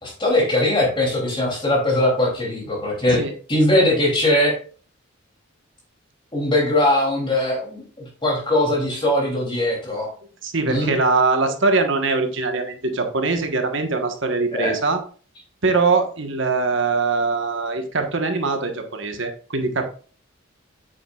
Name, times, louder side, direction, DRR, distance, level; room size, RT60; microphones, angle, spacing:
voice 1, 0.0-3.2 3.5-4.6 6.3-10.1 10.7-10.9 14.5-14.7, left 1 dB, 25° left, -2 dB, 3.0 m, -20 dB
voice 2, 10.4-15.0 15.6-19.8, right 3 dB, 60° right, 5 dB, 1.3 m, -22 dB
8.3 x 8.3 x 2.4 m, 0.40 s
head